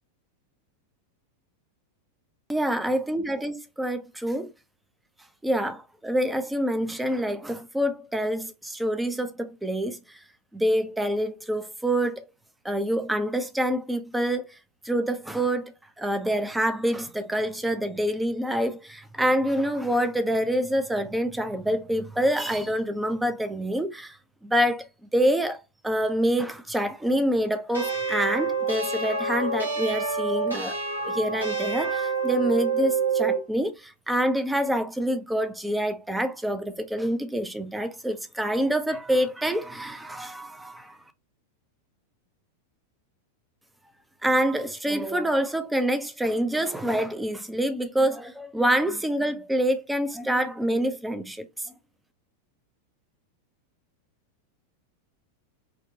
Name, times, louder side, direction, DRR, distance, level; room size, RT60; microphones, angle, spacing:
voice 1, 2.5-4.5 5.4-10.2 10.5-12.2 12.6-14.4 14.8-24.2 24.4-24.9 25.1-30.8 31.0-41.0 44.2-51.7, equal, 5° right, 0.5 m, -26 dB
sound 1, 27.7-33.5, right 4 dB, 85° right, 1.2 m, -27 dB
3.6 x 2.2 x 2.7 m
figure-of-eight pair, 90°, 0 cm